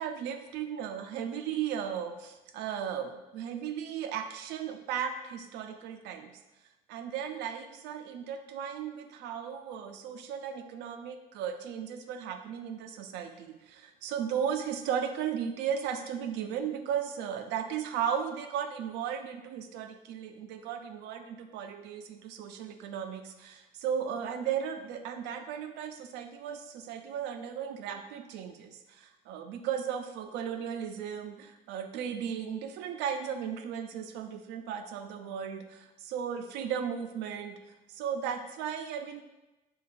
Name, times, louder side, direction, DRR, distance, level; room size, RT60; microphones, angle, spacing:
voice 1, 0.0-6.4 6.9-37.6 37.9-39.2, right 8 dB, 90° right, 7 dB, 0.4 m, -36 dB
6.7 x 2.3 x 2.4 m, 1.0 s
cardioid pair, 110°, 17 cm